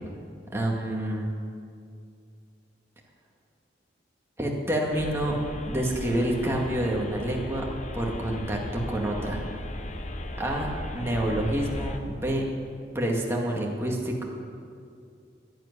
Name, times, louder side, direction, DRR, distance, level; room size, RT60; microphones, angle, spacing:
voice 1, 0.5-1.3 4.4-5.4 5.7-7.6 7.9-9.4 10.4-12.5 12.9-14.2, right 1 dB, 15° right, -1 dB, 2.1 m, -28 dB
sound 1, 4.9-12.0, left 1 dB, 40° left, 1.0 m, -36 dB
11.0 x 10.5 x 9.9 m, 2.3 s
head